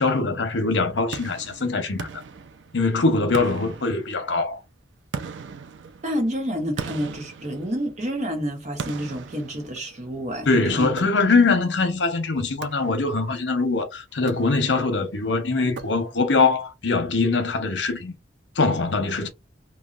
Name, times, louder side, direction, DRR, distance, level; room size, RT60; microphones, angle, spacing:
voice 1, 0.0-2.1 2.7-4.6 10.5-18.1 18.6-19.3, left 3 dB, 85° left, 0.8 m, -22 dB
sound 1, 1.1-2.9 3.3-4.5 5.1-8.2 8.8-10.2 11.0-11.6 12.6-13.3 14.1-14.9 15.8-16.4, right 5 dB, 90° right, 0.4 m, -38 dB
voice 2, 6.0-10.9, equal, 40° right, 1.0 m, -29 dB
3.1 x 2.2 x 2.4 m
head